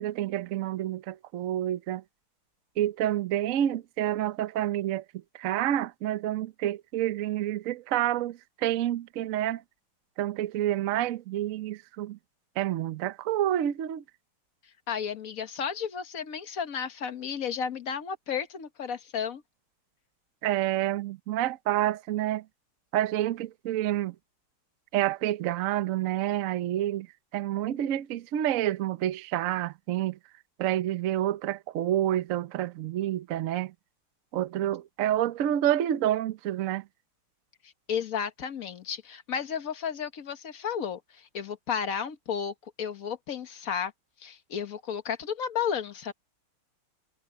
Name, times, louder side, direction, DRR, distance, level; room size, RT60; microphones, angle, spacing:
voice 1, 0.0-2.0 2.8-5.0 5.3-9.6 10.2-12.2 12.6-14.0 20.4-22.4 22.9-24.1 24.9-27.1 27.3-30.2 30.6-33.7 34.3-36.8, right 12 dB, 90° right, 0.7 m, -28 dB
voice 2, 14.9-19.4 37.6-43.9 44.2-46.1, left 7 dB, 45° left, 1.4 m, -33 dB
omnidirectional pair, 2.4 m